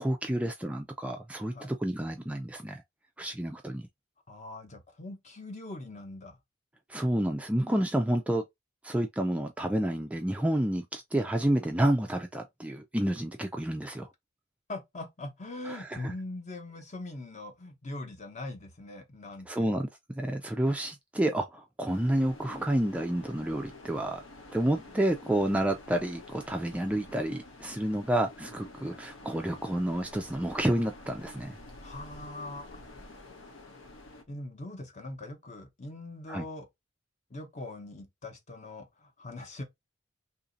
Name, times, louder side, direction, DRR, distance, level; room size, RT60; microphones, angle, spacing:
voice 1, 0.0-2.8 3.2-3.9 6.9-8.4 8.8-14.1 15.6-16.1 19.5-19.9 20.1-24.2 24.5-31.5 36.3-36.4, right 1 dB, 5° right, 0.3 m, -29 dB
voice 2, 4.3-6.4 14.7-19.7 31.8-32.8 34.3-36.7 37.3-39.6, left 2 dB, 35° left, 0.8 m, -41 dB
sound 1, 21.8-34.2, left 2 dB, 75° left, 0.9 m, -49 dB
2.8 x 2.7 x 3.9 m
head